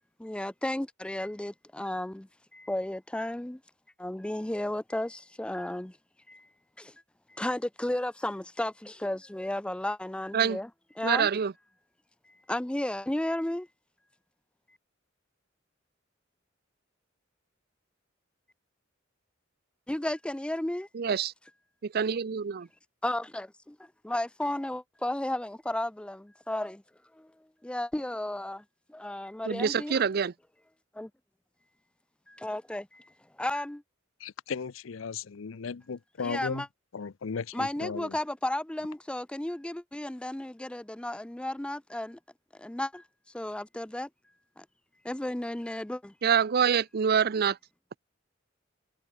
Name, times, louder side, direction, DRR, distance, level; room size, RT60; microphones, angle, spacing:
voice 1, 0.2-3.6 4.0-6.0 6.3-6.5 6.8-6.9 7.3-10.7 11.0-11.3 12.5-13.7 19.9-20.9 23.0-26.8 27.1-27.3 27.6-28.6 28.9-30.0 30.9-31.1 32.3-33.1 33.4-33.8 36.2-36.7 37.5-42.2 42.6-43.0 43.3-44.1 44.6-44.7 45.0-46.1, left 1 dB, 5° left, 0.4 m, -33 dB
voice 2, 11.0-11.5 20.9-21.3 21.8-22.7 29.5-30.3 46.2-47.6, right 7 dB, 50° right, 0.5 m, -26 dB
voice 3, 34.2-36.6 36.9-38.2, left 5 dB, 80° left, 0.6 m, -36 dB
head